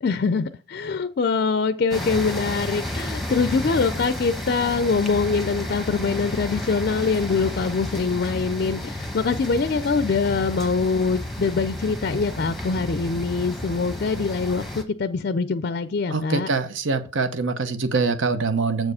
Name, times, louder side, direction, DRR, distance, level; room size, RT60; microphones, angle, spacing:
voice 1, 0.0-16.5, left 4 dB, 50° left, 12 dB, 0.4 m, -24 dB
sound 1, 1.9-14.8, left 1 dB, ahead, 1.0 m, -32 dB
voice 2, 16.1-18.9, right 4 dB, 70° right, 10 dB, 0.9 m, -24 dB
7.7 x 4.9 x 4.8 m, 0.37 s
head